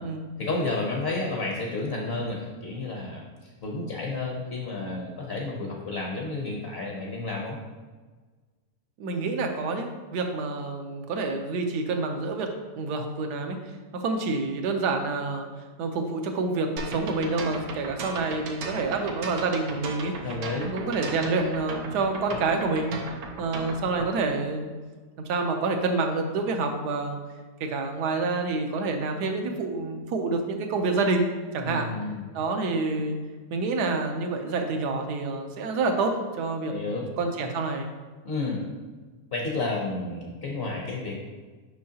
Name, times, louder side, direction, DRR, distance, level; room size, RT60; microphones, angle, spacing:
voice 1, 0.4-7.6 20.2-20.7 31.6-32.4 36.7-37.1 38.2-38.6 39.3-41.2, left 3 dB, 50° left, -1 dB, 0.8 m, -31 dB
voice 2, 9.0-12.5 12.8-13.6 13.9-15.5 15.8-20.1 20.5-23.0 23.4-24.7 25.3-27.2 27.6-31.3 31.5-31.9 32.3-33.2 33.5-37.9, right 3 dB, 70° right, 4 dB, 1.3 m, -28 dB
sound 1, 16.8-24.1, right 4 dB, 90° right, 1.5 m, -36 dB
6.5 x 5.6 x 2.8 m, 1.4 s
omnidirectional pair, 1.8 m